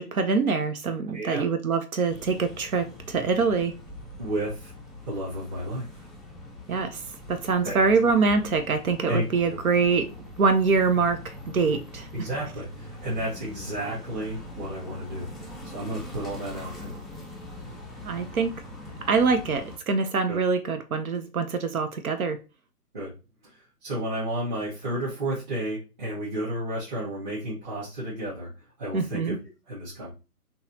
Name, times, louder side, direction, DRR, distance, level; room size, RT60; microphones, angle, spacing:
voice 1, 0.0-3.7 6.7-7.0 7.3-12.1 18.0-18.6 19.0-22.4 28.9-29.4, right 4 dB, 65° right, 0.7 m, -24 dB
voice 2, 1.1-1.5 4.2-4.7 5.0-6.0 7.6-7.9 9.1-9.6 12.1-15.3 15.6-16.9 20.3-20.4 22.9-23.1 23.4-29.3 29.7-30.1, right 1 dB, 30° right, 1.5 m, -32 dB
sound 1, 2.1-19.8, left 1 dB, ahead, 0.3 m, -43 dB
3.8 x 2.8 x 2.8 m
hypercardioid pair, 155°, 46 cm